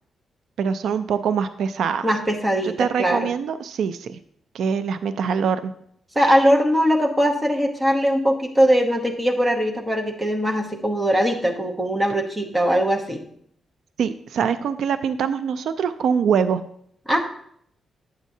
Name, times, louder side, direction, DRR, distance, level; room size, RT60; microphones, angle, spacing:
voice 1, 0.6-2.1 2.8-4.2 4.5-5.7 14.0-16.6, right 7 dB, 75° right, 11 dB, 0.4 m, -23 dB
voice 2, 2.0-3.3 6.1-13.2 17.1-17.2, equal, 10° right, 1 dB, 0.9 m, -21 dB
10.0 x 7.2 x 2.7 m, 0.68 s
wide cardioid pair, 180°, 0 cm